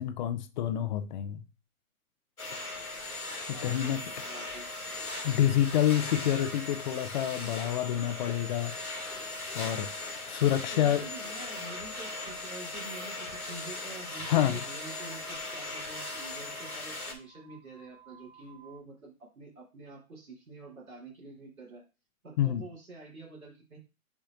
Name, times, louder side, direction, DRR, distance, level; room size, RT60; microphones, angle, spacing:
voice 1, 0.0-1.4 3.6-4.0 5.2-8.7 9.5-9.9 10.3-11.0 14.2-14.6 22.4-22.6, left 11 dB, 35° left, 0.7 m, -27 dB
sound 1, 2.4-17.1, left 2 dB, 85° left, 2.4 m, -39 dB
voice 2, 3.5-4.7 10.7-21.8 22.2-23.8, right 3 dB, 75° right, 4.1 m, -47 dB
sound 2, 13.9-18.8, right 8 dB, 40° right, 2.4 m, -56 dB
10.5 x 4.3 x 2.6 m
figure-of-eight pair, 120°, 43 cm